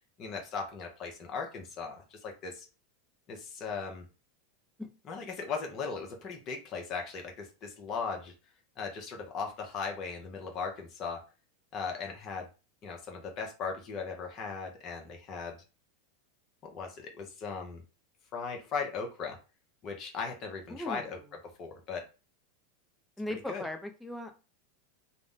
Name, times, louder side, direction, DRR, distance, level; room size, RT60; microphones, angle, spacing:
voice 1, 0.2-2.7 3.3-4.1 5.0-8.3 8.8-11.2 11.7-12.5 12.8-15.6 16.6-17.8 18.3-19.4 19.8-21.2 21.6-22.0 23.5-23.6, left 5 dB, 45° left, 2 dB, 0.7 m, -38 dB
voice 2, 20.7-21.1 23.2-24.4, left 1 dB, 5° left, 4 dB, 0.4 m, -38 dB
2.5 x 2.1 x 3.6 m, 0.32 s
hypercardioid pair, 105°, 0 cm